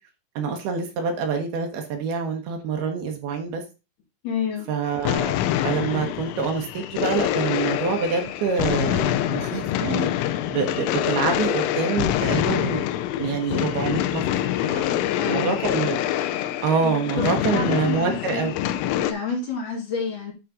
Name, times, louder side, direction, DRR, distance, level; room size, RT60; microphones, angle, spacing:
voice 1, 0.4-3.6 4.7-5.3 5.6-10.1 10.5-12.8 13.2-14.2 14.7-15.0 15.3-16.0 16.6-18.5, right 5 dB, 70° right, 3 dB, 2.7 m, -26 dB
voice 2, 4.2-4.7 14.9-15.6 16.8-18.5 19.0-20.3, left 5 dB, 50° left, -2 dB, 3.3 m, -29 dB
sound 1, 4.9-19.1, left 12 dB, 80° left, 2.9 m, -25 dB
12.0 x 4.1 x 3.8 m, 0.29 s
omnidirectional pair, 5.7 m